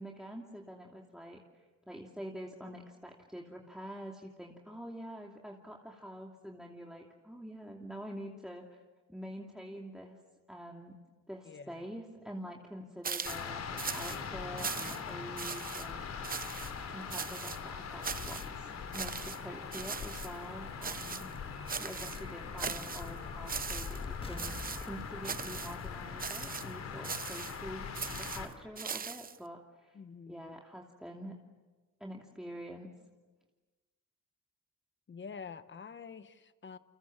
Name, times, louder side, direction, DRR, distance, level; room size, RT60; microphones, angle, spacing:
voice 1, 0.0-8.8 9.1-10.2 10.5-11.0 11.3-16.4 16.8-21.3 21.8-30.0 30.3-31.4 32.0-32.9, equal, ahead, 0 dB, 2.8 m, -46 dB
voice 2, 11.4-11.9 29.9-30.5 35.1-36.8, left 5 dB, 40° left, 12 dB, 1.3 m, -47 dB
sound 1, 13.0-13.5 13.8-14.2 14.6-15.1 15.4-15.9 16.2-16.7 17.1-17.6 18.0-18.5 18.9-19.4 19.7-20.3 20.8-21.3 21.7-22.2 22.6-23.1 23.5-24.1 24.4-24.9 25.2-25.8 26.2-26.7 27.0-27.6 28.0-29.4, right 6 dB, 30° right, 0.8 m, -39 dB
sound 2, 13.3-28.5, left 6 dB, 60° left, 4.0 m, -42 dB
sound 3, 21.5-27.2, left 2 dB, 20° left, 1.9 m, -51 dB
29.5 x 25.5 x 7.4 m, 1.3 s
cardioid pair, 90°, 30 cm